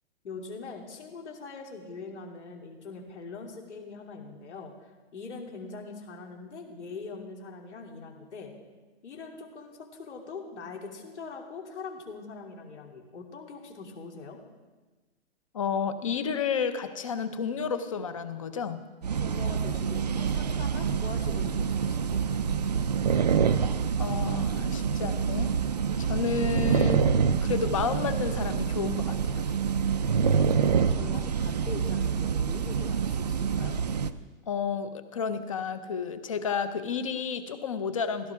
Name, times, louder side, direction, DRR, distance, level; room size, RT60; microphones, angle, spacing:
voice 1, 0.2-8.5 9.0-14.4 19.2-22.5 30.2-33.8, left 4 dB, 80° left, 1 dB, 3.0 m, -42 dB
voice 2, 15.5-18.8 24.0-25.5 26.0-29.4 34.5-38.3, left 6 dB, 30° left, 11 dB, 0.6 m, -31 dB
sound 1, 19.0-34.1, right 6 dB, 40° right, 0.4 m, -26 dB
16.0 x 13.5 x 3.6 m, 1.3 s
hypercardioid pair, 170°, 34 cm